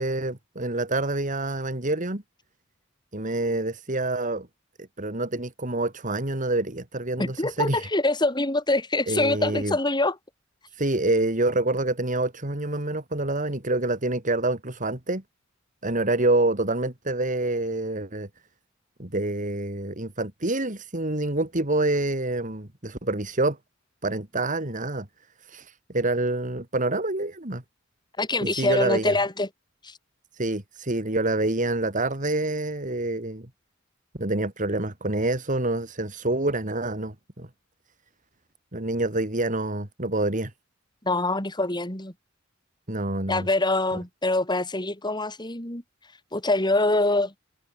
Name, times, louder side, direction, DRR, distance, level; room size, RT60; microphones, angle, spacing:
voice 1, 0.0-2.2 3.1-4.5 5.0-7.9 9.1-9.8 10.7-15.2 15.8-18.3 19.0-23.6 24.0-25.1 25.4-27.6 28.4-29.2 30.3-33.5 34.2-37.5 38.7-40.5 42.9-43.5, right 2 dB, 40° right, 2.9 m, -27 dB
voice 2, 7.2-10.2 28.2-29.5 29.8-30.0 41.0-42.1 43.3-45.8 46.3-47.3, left 2 dB, 20° left, 7.3 m, -24 dB
head